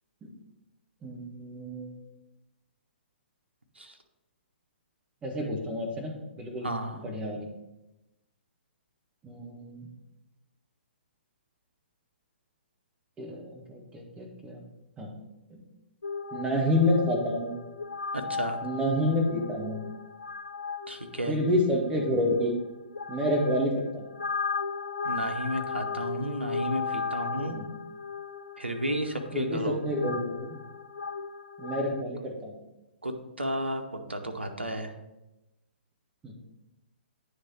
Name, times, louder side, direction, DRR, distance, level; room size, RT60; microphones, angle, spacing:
voice 1, 1.0-1.9 5.2-7.5 9.2-9.9 13.2-14.6 15.0-15.1 15.5-15.6 16.3-17.6 18.6-19.8 21.2-22.5 23.1-24.0 27.5-27.7 29.3-30.5 31.6-32.6 36.2-36.3, left 1 dB, 15° right, 0 dB, 1.3 m, -29 dB
voice 2, 6.6-7.0 18.1-18.6 20.9-21.4 25.0-27.6 28.6-29.8 33.0-33.8 34.1-34.9, right 1 dB, 85° right, 4 dB, 0.9 m, -32 dB
sound 1, 16.0-32.0, left 5 dB, 85° left, 0.3 m, -37 dB
9.6 x 3.3 x 4.3 m, 0.96 s
figure-of-eight pair, 125°, 6 cm